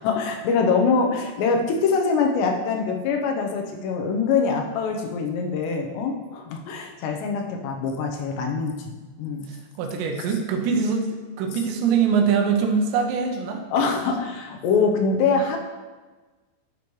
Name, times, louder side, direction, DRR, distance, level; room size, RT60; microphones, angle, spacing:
voice 1, 0.0-9.5 13.7-15.6, left 5 dB, 85° left, 2 dB, 3.1 m, -24 dB
voice 2, 9.5-13.6, right 6 dB, 85° right, 3 dB, 3.2 m, -23 dB
10.5 x 6.9 x 3.2 m, 1.3 s
omnidirectional pair, 4.9 m